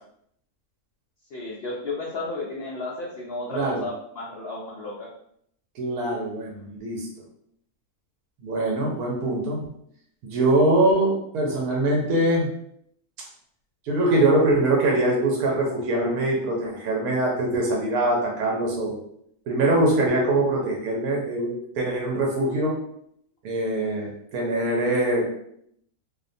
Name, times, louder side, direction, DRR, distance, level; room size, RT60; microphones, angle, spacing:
voice 1, 1.3-5.1, left 2 dB, 80° left, -3 dB, 0.5 m, -33 dB
voice 2, 3.5-3.8 5.8-7.1 8.4-9.6 10.2-12.5 13.9-19.0 19.5-22.8 23.4-25.2, right 1 dB, 90° right, -1 dB, 1.1 m, -23 dB
2.7 x 2.1 x 2.5 m, 0.70 s
omnidirectional pair, 1.6 m